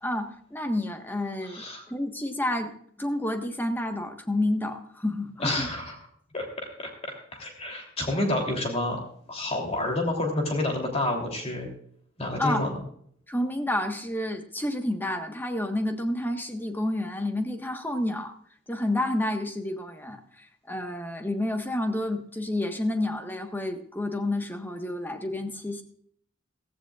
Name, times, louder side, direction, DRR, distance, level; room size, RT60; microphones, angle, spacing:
voice 1, 0.0-5.7 12.4-12.7 13.3-18.3 18.7-25.8, left 1 dB, 10° left, 6 dB, 1.4 m, -30 dB
voice 2, 1.4-1.8 5.4-5.9 6.3-9.0 9.3-11.7 12.2-12.8, left 1 dB, 30° left, 2 dB, 3.2 m, -29 dB
16.0 x 15.5 x 2.4 m, 0.63 s
head